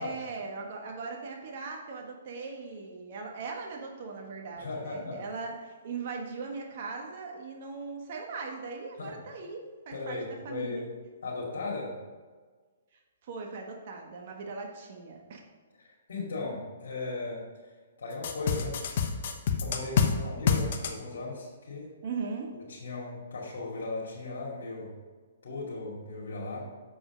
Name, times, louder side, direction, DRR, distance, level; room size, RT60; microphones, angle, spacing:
voice 1, 0.0-10.2 10.4-10.8 13.2-15.4 22.0-22.5, right 4 dB, 50° right, 1 dB, 1.3 m, -39 dB
voice 2, 4.6-5.2 9.0-9.1 9.9-10.9 11.2-12.0 15.8-17.4 18.0-19.3 19.6-21.9 22.7-24.9 25.4-26.6, left 3 dB, 70° left, -5 dB, 2.5 m, -37 dB
sound 1, 18.2-20.1 20.5-20.9, left 7 dB, 55° left, 0.9 m, -26 dB
7.0 x 5.1 x 5.1 m, 1.4 s
hypercardioid pair, 135°, 0 cm